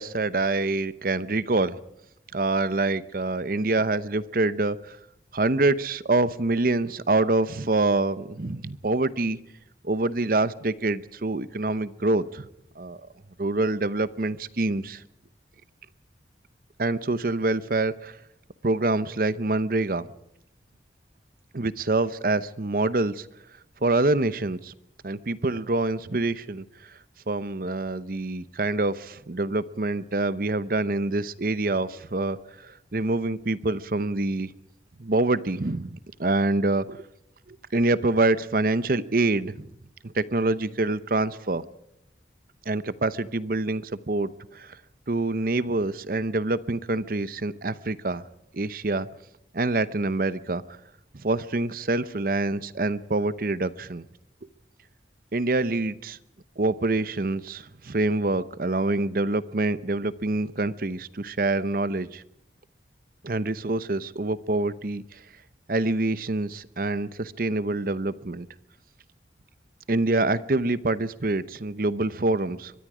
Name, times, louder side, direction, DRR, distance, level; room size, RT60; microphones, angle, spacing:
voice 1, 0.0-1.8 2.3-5.0 5.3-9.4 9.8-12.5 12.8-13.0 13.4-15.0 16.8-18.2 18.6-20.1 21.5-23.3 23.8-24.7 25.0-26.9 27.3-34.5 35.0-37.0 37.5-39.7 40.0-41.6 42.7-44.8 45.1-48.2 48.5-49.1 49.5-50.6 51.1-54.1 55.3-56.2 56.6-62.2 63.2-65.2 65.7-68.5 69.9-72.7, right 2 dB, 55° right, 16 dB, 0.8 m, -26 dB
23.5 x 22.5 x 5.0 m, 0.80 s
head